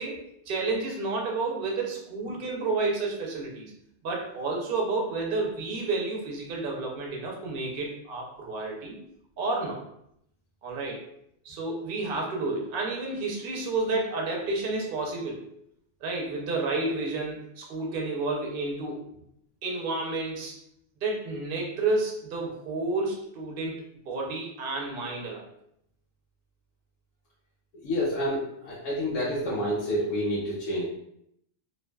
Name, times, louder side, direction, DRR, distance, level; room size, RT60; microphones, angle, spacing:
voice 1, 0.0-3.7 4.0-9.0 9.4-9.8 10.6-11.0 11.4-15.4 16.0-19.0 19.6-20.6 21.0-25.5, right 3 dB, 55° right, -1 dB, 0.7 m, -30 dB
voice 2, 27.8-30.9, equal, 75° left, -6 dB, 1.0 m, -28 dB
2.5 x 2.2 x 2.2 m, 0.74 s
omnidirectional pair, 1.3 m